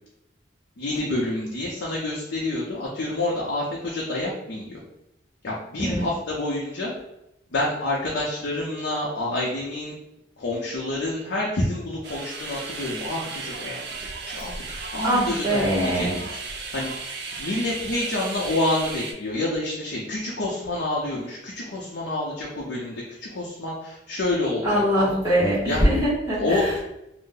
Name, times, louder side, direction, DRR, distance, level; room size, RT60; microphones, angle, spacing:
voice 1, 0.8-4.8 5.4-6.9 7.5-9.9 10.4-25.2 25.6-25.8 26.4-26.6, left 2 dB, 70° left, -4 dB, 0.6 m, -28 dB
sound 1, 12.0-19.1, right 4 dB, 65° right, 0.5 m, -35 dB
voice 2, 15.0-16.1 24.6-26.9, equal, 15° right, -9 dB, 1.3 m, -22 dB
2.6 x 2.0 x 3.7 m, 0.86 s
head